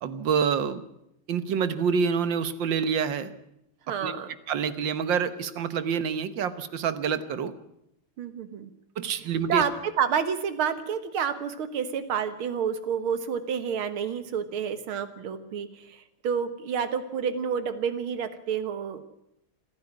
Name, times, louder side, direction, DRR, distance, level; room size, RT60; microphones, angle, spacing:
voice 1, 0.0-0.8 1.3-3.3 4.0-4.1 4.5-7.5 9.0-9.6, right 6 dB, 65° right, 13 dB, 1.7 m, -27 dB
voice 2, 3.9-4.3 8.2-8.7 9.2-19.1, right 7 dB, 90° right, 11 dB, 2.2 m, -29 dB
28.0 x 10.5 x 9.6 m, 0.80 s
omnidirectional pair, 2.2 m